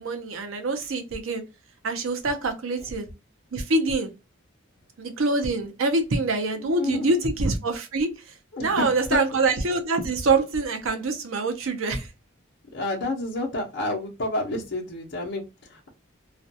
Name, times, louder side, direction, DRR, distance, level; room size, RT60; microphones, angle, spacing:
voice 1, 0.0-1.4 1.8-3.1 3.5-4.1 5.0-12.1, right 3 dB, 75° right, 0.6 m, -25 dB
voice 2, 6.6-7.2 8.5-9.2 12.7-15.9, left 2 dB, 55° left, 0.7 m, -30 dB
2.4 x 2.2 x 2.7 m
head